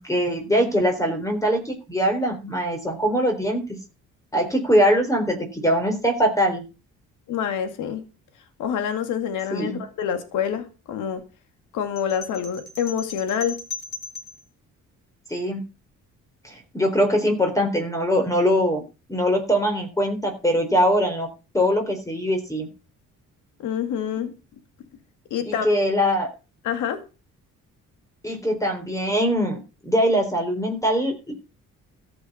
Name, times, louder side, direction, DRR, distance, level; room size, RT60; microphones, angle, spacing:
voice 1, 0.0-3.6 4.3-6.6 9.5-9.8 15.3-15.6 16.4-18.8 19.1-21.3 21.5-22.7 25.5-26.3 28.2-31.3, equal, 10° left, 3.9 m, -22 dB
voice 2, 7.3-8.0 8.6-11.2 11.7-13.6 23.6-24.3 25.3-25.7 26.6-27.0, left 8 dB, 90° left, 2.3 m, -27 dB
sound 1, 12.0-14.4, left 3 dB, 35° left, 7.6 m, -37 dB
14.0 x 7.8 x 5.6 m
cardioid pair, 90°, 30 cm